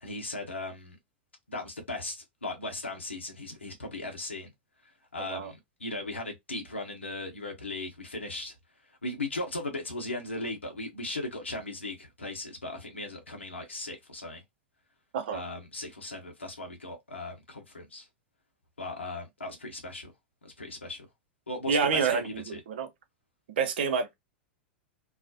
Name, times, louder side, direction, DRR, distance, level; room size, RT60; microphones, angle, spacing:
voice 1, 0.0-1.0 1.5-4.5 5.1-8.5 9.0-14.4 15.3-18.1 18.8-20.1 20.4-21.1 21.5-22.6, left 2 dB, 85° left, 0.8 m, -37 dB
voice 2, 5.2-5.5 15.1-15.4 21.7-22.9 23.6-24.1, right 6 dB, 65° right, 0.6 m, -28 dB
2.4 x 2.0 x 2.5 m
figure-of-eight pair, 95°, 6 cm